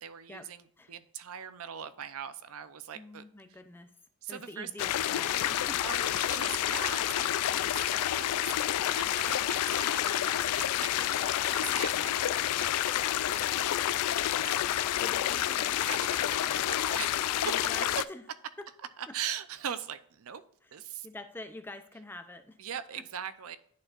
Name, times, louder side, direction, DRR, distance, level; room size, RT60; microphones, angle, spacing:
voice 1, 0.0-3.2 4.2-4.7 5.8-12.8 14.3-14.6 15.8-17.6 19.1-20.4 20.7-21.1 22.6-23.6, right 8 dB, 70° right, 13 dB, 0.5 m, -41 dB
voice 2, 2.9-3.9 4.3-5.8 7.5-7.6 13.7-14.0 14.7-16.0 17.4-18.2 18.6-18.7 19.1-19.2 21.0-22.6, left 2 dB, 10° left, 8 dB, 0.5 m, -46 dB
sound 1, 4.8-18.0, left 12 dB, 80° left, 0.3 m, -29 dB
10.5 x 4.4 x 2.4 m, 0.64 s
head